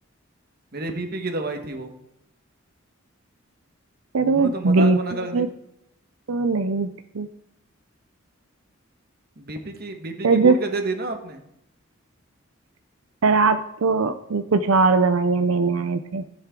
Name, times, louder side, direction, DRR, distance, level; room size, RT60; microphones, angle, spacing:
voice 1, 0.7-1.9 4.3-5.5 9.4-11.4, right 2 dB, 50° right, 5 dB, 1.4 m, -30 dB
voice 2, 4.1-5.0 5.3-5.5 6.3-6.9 7.1-7.3 10.2-10.6 13.2-16.2, right 4 dB, 90° right, 9 dB, 0.6 m, -20 dB
15.5 x 7.7 x 3.8 m, 0.79 s
head